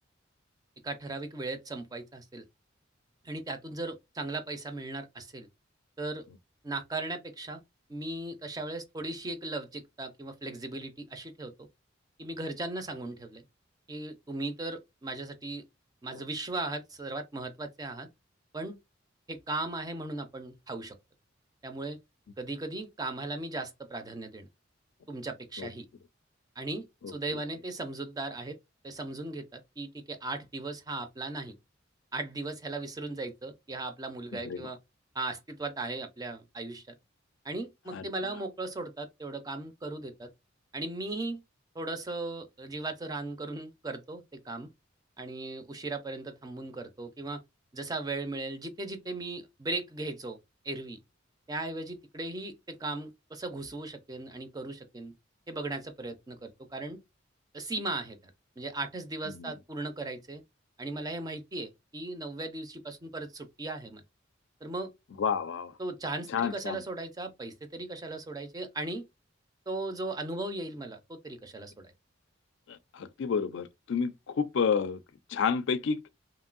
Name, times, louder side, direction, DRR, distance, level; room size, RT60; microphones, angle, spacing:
voice 1, 0.8-2.4 3.2-5.5 6.0-6.3 6.6-7.6 7.9-11.5 12.2-13.4 13.9-15.6 16.0-18.1 18.5-18.8 19.3-21.0 21.6-22.0 22.4-24.5 25.1-25.9 26.6-28.6 28.8-31.5 32.1-34.8 35.1-36.9 37.4-40.3 40.7-41.4 41.7-44.7 45.2-47.4 47.7-50.4 50.6-51.0 51.5-55.1 55.5-57.0 57.5-60.4 60.8-64.0 64.6-64.9 65.8-69.0 69.7-71.9, right 2 dB, 20° right, 0.5 m, -37 dB
voice 2, 27.0-27.4 34.4-34.7 37.9-38.1 59.3-59.5 65.2-65.7 66.3-66.8 72.7-75.0 75.3-76.0, left 6 dB, 65° left, 0.4 m, -30 dB
3.0 x 2.6 x 2.4 m
head